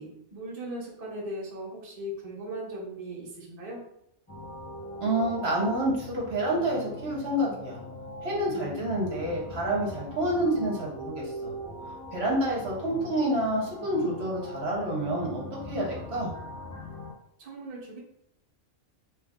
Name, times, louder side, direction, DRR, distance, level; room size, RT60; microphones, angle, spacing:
voice 1, 0.0-3.8 17.4-18.0, right 1 dB, 35° right, -4 dB, 0.8 m, -38 dB
sound 1, 4.3-17.1, left 1 dB, 15° left, 0.7 m, -41 dB
voice 2, 5.0-7.8 8.2-11.5 12.1-16.3, right 1 dB, 60° right, -3 dB, 1.1 m, -28 dB
3.0 x 2.5 x 3.5 m, 0.74 s
omnidirectional pair, 1.3 m